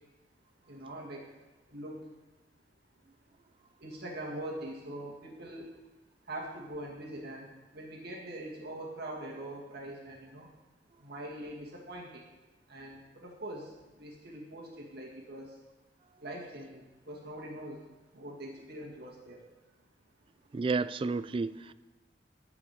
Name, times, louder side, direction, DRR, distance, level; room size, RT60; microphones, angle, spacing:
voice 1, 0.7-1.2 1.7-2.0 3.8-5.7 6.3-10.5 11.0-12.2 12.7-13.7 14.0-15.5 16.2-17.8 18.1-19.4, right 1 dB, 60° right, -1 dB, 2.0 m, -43 dB
voice 2, 20.5-21.7, right 4 dB, 30° right, 15 dB, 0.3 m, -31 dB
13.0 x 5.0 x 8.8 m, 1.1 s
head